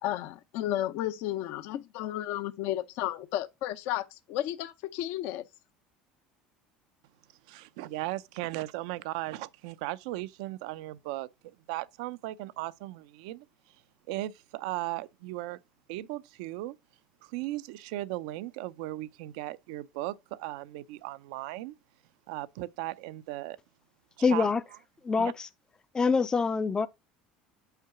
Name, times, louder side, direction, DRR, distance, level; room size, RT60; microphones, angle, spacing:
voice 1, 0.0-5.4, left 13 dB, 70° left, 0.7 m, -33 dB
voice 2, 7.5-11.3 11.7-13.5 14.1-15.6 15.9-16.8 17.2-21.8 22.3-23.6 24.3-24.5 25.2-25.3, right 17 dB, 80° right, 0.5 m, -37 dB
voice 3, 24.2-24.6 25.0-25.5 25.9-26.9, left 4 dB, 20° left, 0.4 m, -25 dB
5.7 x 3.8 x 5.7 m
supercardioid pair, 95°, 4 cm